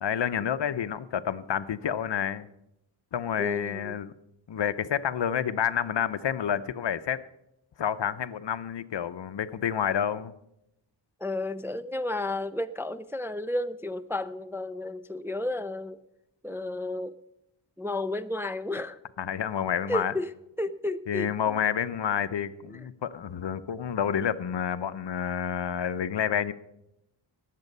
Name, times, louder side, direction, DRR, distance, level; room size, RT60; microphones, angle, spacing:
voice 1, 0.0-2.5 3.1-4.1 4.5-7.2 7.8-10.3 19.2-20.1 21.1-26.5, left 8 dB, 65° left, 14 dB, 0.7 m, -29 dB
voice 2, 3.4-4.0 11.2-16.0 16.4-17.2 17.8-19.0 19.9-21.6 22.7-22.8, left 2 dB, 5° right, 11 dB, 0.4 m, -32 dB
19.0 x 7.6 x 5.4 m, 0.84 s
wide cardioid pair, 75°, 46 cm